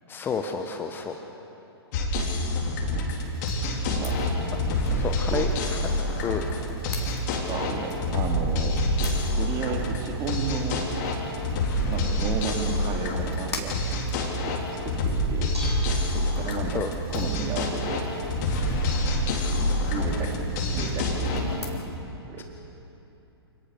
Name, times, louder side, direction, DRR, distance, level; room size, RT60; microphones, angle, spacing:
voice 1, 0.1-1.1 5.0-5.5 6.2-6.4 16.7-16.9 22.4-22.5, left 6 dB, 15° left, 5 dB, 1.2 m, -30 dB
sound 1, 1.9-21.4, left 1 dB, 40° left, 4.1 m, -27 dB
sound 2, 3.1-21.8, left 2 dB, 75° left, 3.9 m, -43 dB
voice 2, 3.9-4.4 4.8-5.0 5.3-5.5 7.5-8.8 9.4-10.8 11.9-13.8 14.4-14.5 14.8-15.6 16.1-18.1 19.9-21.7 22.3-22.4, right 5 dB, 25° right, 2 dB, 2.9 m, -33 dB
Bell / Dishes pots and pans, 15.1-21.8, right 1 dB, 85° right, 6.1 m, -46 dB
28.0 x 19.0 x 6.4 m, 3.0 s
figure-of-eight pair, 110°, 14 cm